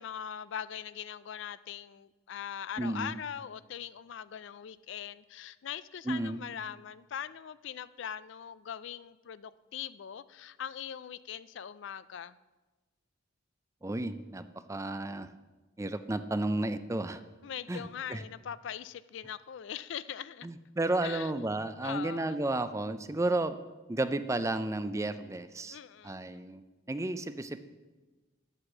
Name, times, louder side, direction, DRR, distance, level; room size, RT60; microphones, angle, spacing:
voice 1, 0.0-12.4 17.4-20.5 21.0-21.3 21.8-22.4 25.7-26.5, left 8 dB, 60° left, 16 dB, 0.4 m, -41 dB
voice 2, 2.8-3.2 6.1-6.4 13.8-15.3 15.8-17.2 17.7-17.8 18.1-18.2 20.4-23.6 23.9-25.8 26.0-26.6 26.9-27.6, right 2 dB, 15° right, 11 dB, 0.4 m, -32 dB
10.0 x 8.1 x 7.2 m, 1.2 s
head